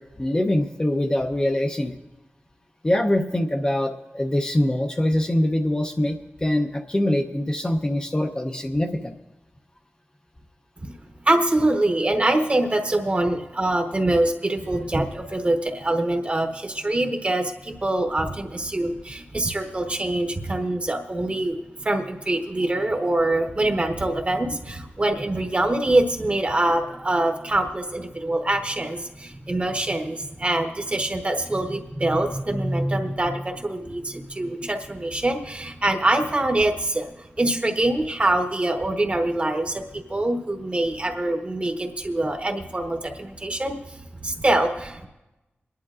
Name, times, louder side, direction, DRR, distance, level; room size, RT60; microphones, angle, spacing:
voice 1, 0.0-2.0 2.8-9.2, left 1 dB, 20° left, 4 dB, 0.7 m, -23 dB
voice 2, 11.2-45.1, right 1 dB, 30° right, 5 dB, 1.0 m, -24 dB
28.5 x 10.5 x 2.4 m, 1.0 s
wide cardioid pair, 115°, 4 cm